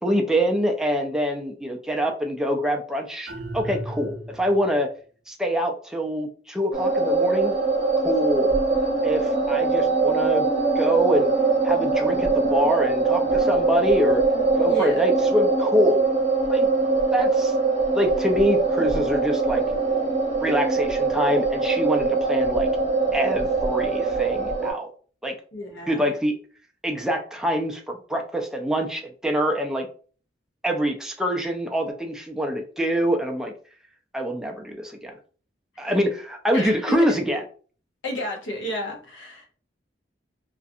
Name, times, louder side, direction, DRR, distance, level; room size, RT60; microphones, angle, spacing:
voice 1, 0.0-4.9 5.3-7.5 8.0-8.5 9.0-10.5 10.8-11.3 11.6-14.2 14.6-16.0 16.5-16.7 17.1-17.5 17.9-19.6 20.4-22.7 23.1-24.9 25.2-25.4 25.9-26.4 26.8-29.9 30.6-33.5 34.1-35.1 35.8-37.4, equal, 5° right, 2 dB, 0.3 m, -25 dB
sound 1, 3.3-4.7, right 1 dB, 65° right, 0.5 m, -35 dB
sound 2, 6.7-24.7, right 3 dB, 35° right, 0.8 m, -22 dB
voice 2, 25.5-26.1 35.7-36.0 36.5-37.2 38.0-39.5, equal, 75° left, 1 dB, 0.8 m, -31 dB
2.5 x 2.3 x 2.6 m, 0.42 s
head